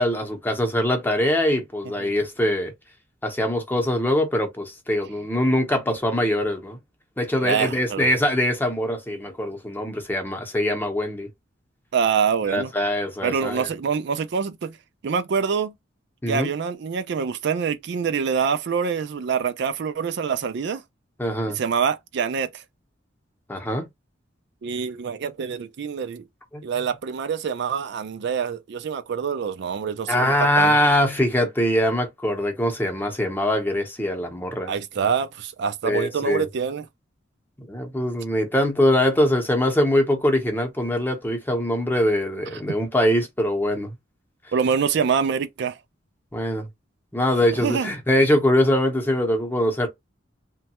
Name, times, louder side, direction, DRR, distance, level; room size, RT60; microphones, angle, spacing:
voice 1, 0.0-2.7 3.2-6.8 7.2-11.3 12.5-13.7 16.2-16.5 21.2-21.6 23.5-23.9 26.5-26.6 30.1-34.8 35.8-36.5 37.6-43.9 46.3-46.7 47.1-49.9, left 1 dB, 10° left, 0.8 m, -22 dB
voice 2, 7.4-8.1 11.9-12.7 13.2-14.8 15.0-15.7 16.3-20.8 21.5-22.6 24.6-26.2 26.6-30.8 34.7-36.9 44.5-45.8 47.6-47.9, right 6 dB, 60° right, 0.4 m, -25 dB
3.1 x 2.2 x 2.8 m
head